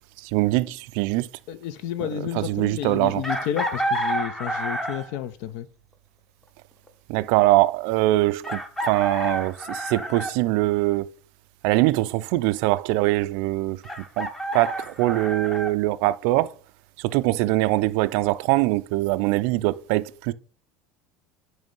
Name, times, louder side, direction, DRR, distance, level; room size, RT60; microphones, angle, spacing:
voice 1, 0.3-1.3 2.0-3.3 7.1-11.0 11.6-13.8 14.2-16.5 17.0-20.3, right 18 dB, 60° right, 0.4 m, -23 dB
voice 2, 1.5-5.7, left 11 dB, 60° left, 0.6 m, -31 dB
Chicken rooster, 3.2-5.2 6.9-7.0 8.4-10.4 13.8-15.7, right 1 dB, 5° left, 0.7 m, -29 dB
8.9 x 3.2 x 5.4 m
cardioid pair, 170°, 3 cm